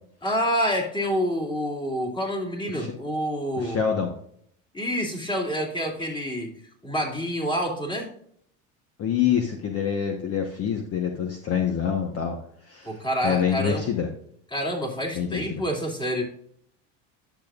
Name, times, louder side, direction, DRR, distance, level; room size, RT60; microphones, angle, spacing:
voice 1, 0.2-3.8 4.7-6.5 6.8-8.1 12.8-13.9 14.5-16.2, equal, 10° left, -1 dB, 2.6 m, -27 dB
voice 2, 3.6-4.1 9.0-12.4 12.7-14.1 15.1-15.6, left 8 dB, 40° left, 4 dB, 1.1 m, -26 dB
10.0 x 7.1 x 2.4 m, 0.65 s
supercardioid pair, 105°, 37 cm